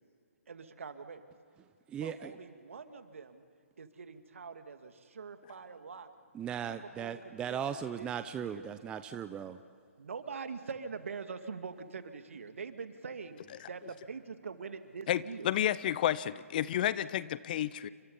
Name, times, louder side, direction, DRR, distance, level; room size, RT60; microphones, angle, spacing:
voice 1, 0.5-1.2 2.0-3.4 3.8-6.1 6.7-8.7 10.0-15.5, right 5 dB, 60° right, 8 dB, 2.1 m, -44 dB
voice 2, 1.9-2.3 6.3-9.6, right 8 dB, 10° right, 11 dB, 0.6 m, -38 dB
voice 3, 15.1-17.9, left 11 dB, 35° left, 18 dB, 0.6 m, -31 dB
30.0 x 25.5 x 5.5 m, 2.2 s
figure-of-eight pair, 135°, 8 cm